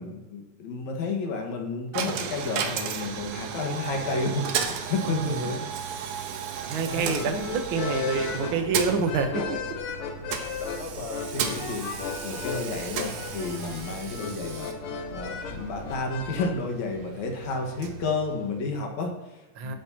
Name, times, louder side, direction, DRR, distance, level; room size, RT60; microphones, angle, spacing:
voice 1, 0.0-5.6 6.8-7.3 9.4-9.6 10.0-14.7 15.1-19.8, left 3 dB, 60° left, 2 dB, 2.8 m, -32 dB
Coin (dropping), 1.9-18.9, right 7 dB, 80° right, 2.5 m, -35 dB
voice 2, 5.0-5.6 6.7-9.6 19.6-19.7, right 5 dB, 65° right, 5 dB, 1.3 m, -27 dB
sound 1, 6.7-18.1, right 1 dB, 30° right, 3.0 m, -52 dB
sound 2, 6.9-16.5, left 6 dB, 90° left, 1.2 m, -36 dB
17.5 x 8.8 x 2.9 m, 1.1 s
omnidirectional pair, 3.8 m